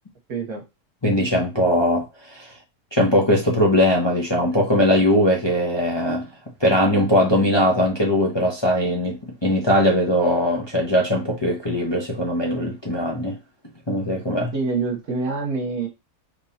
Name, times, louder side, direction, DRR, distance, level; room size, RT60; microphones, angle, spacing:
voice 1, 0.3-0.6 14.5-15.9, right 4 dB, 70° right, 1.6 m, -26 dB
voice 2, 1.0-2.5 2.9-6.3 6.6-13.4 13.9-14.5, left 1 dB, 20° left, 0.7 m, -20 dB
5.3 x 3.2 x 2.8 m
omnidirectional pair, 1.6 m